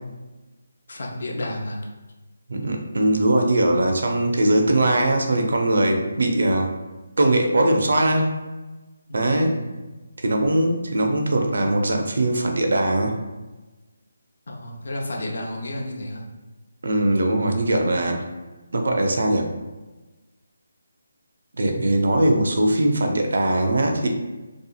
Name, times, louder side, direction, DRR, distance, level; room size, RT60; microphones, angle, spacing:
voice 1, 0.9-1.8 9.1-9.8 14.5-16.3, left 1 dB, 60° left, -1 dB, 0.6 m, -31 dB
voice 2, 2.5-6.7 7.2-8.4 9.1-9.6 10.2-13.2 16.8-18.2 18.7-19.5 21.6-24.1, right 1 dB, 60° right, 3 dB, 0.4 m, -20 dB
2.7 x 2.4 x 2.3 m, 1.2 s
figure-of-eight pair, 150°, 0 cm